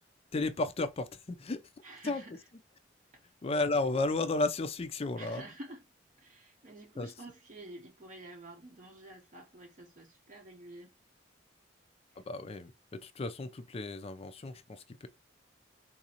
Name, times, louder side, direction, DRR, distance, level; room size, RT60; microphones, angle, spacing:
voice 1, 0.3-1.6 2.0-2.2 3.4-5.4 7.0-7.1 12.2-12.7 13.0-15.1, left 2 dB, 35° left, 0.4 m, -33 dB
voice 2, 1.8-2.5 3.1-3.2 5.2-5.8 6.2-10.9 12.1-12.2, right 1 dB, 40° right, 0.6 m, -49 dB
3.9 x 2.5 x 2.8 m
head